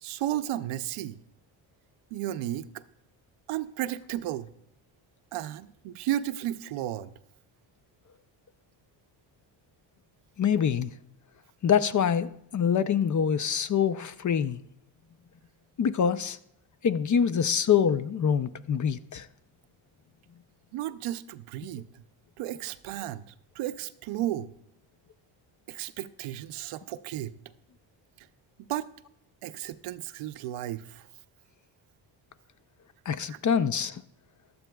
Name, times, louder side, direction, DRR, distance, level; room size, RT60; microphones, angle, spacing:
voice 1, 0.0-1.2 2.1-2.8 3.5-4.5 5.3-7.1 20.7-22.0 22.4-24.5 25.7-27.4 28.2-28.3 28.7-28.9 29.4-31.1 33.3-33.4, right 13 dB, 85° right, 0.7 m, -34 dB
voice 2, 10.4-10.9 11.6-14.6 15.8-16.4 16.8-19.3 33.1-34.0, left 7 dB, 40° left, 0.6 m, -25 dB
15.5 x 12.0 x 2.3 m
cardioid pair, 85°, 49 cm